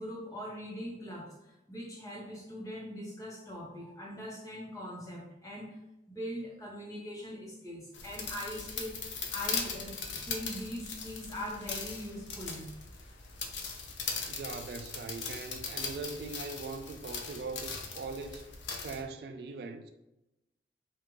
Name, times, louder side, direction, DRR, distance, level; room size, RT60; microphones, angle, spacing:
voice 1, 0.0-5.8 6.1-12.7 14.0-14.1, equal, 20° left, 1.0 m, -41 dB
sound 1, 7.9-19.0, left 5 dB, 85° left, 0.6 m, -39 dB
voice 2, 14.3-18.4 18.8-19.9, right 4 dB, 60° right, 0.3 m, -41 dB
5.0 x 2.4 x 3.1 m
head